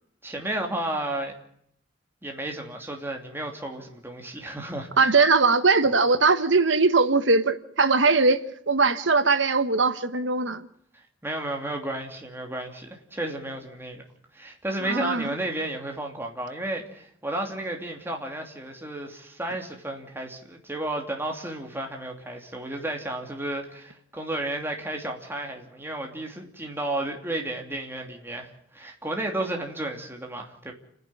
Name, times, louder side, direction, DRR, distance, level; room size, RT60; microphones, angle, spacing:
voice 1, 0.2-1.4 2.2-5.1 11.2-14.0 14.3-30.7, right 1 dB, 10° right, 2.8 m, -32 dB
voice 2, 5.0-8.4 8.7-10.7 14.8-15.3, right 4 dB, 70° right, 1.3 m, -20 dB
29.5 x 10.5 x 9.8 m
head